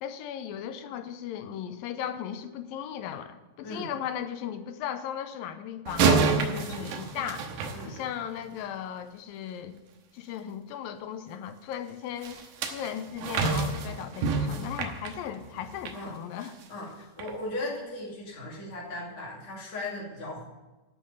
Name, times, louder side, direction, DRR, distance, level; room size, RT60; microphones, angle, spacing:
voice 1, 0.0-7.5 7.9-9.8 10.1-16.5, left 9 dB, 85° left, 9 dB, 2.4 m, -37 dB
sound 1, 5.9-8.4 12.2-16.0 16.4-16.6 17.2-17.3, right 4 dB, 70° right, 2.4 m, -28 dB
voice 2, 16.7-20.4, left 1 dB, 50° left, -5 dB, 3.6 m, -37 dB
12.0 x 5.6 x 8.0 m, 1.1 s
omnidirectional pair, 4.1 m